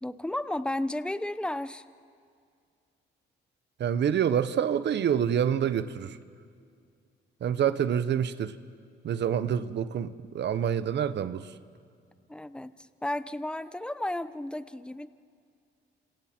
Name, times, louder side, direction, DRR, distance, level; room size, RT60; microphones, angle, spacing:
voice 1, 0.0-1.8 12.3-12.7 13.0-15.1, left 1 dB, 5° left, 14 dB, 0.8 m, -33 dB
voice 2, 3.8-6.2 7.4-8.6 9.0-11.5, right 9 dB, 60° right, 13 dB, 0.9 m, -27 dB
30.0 x 27.0 x 4.4 m, 2.3 s
cardioid pair, 90°, 20 cm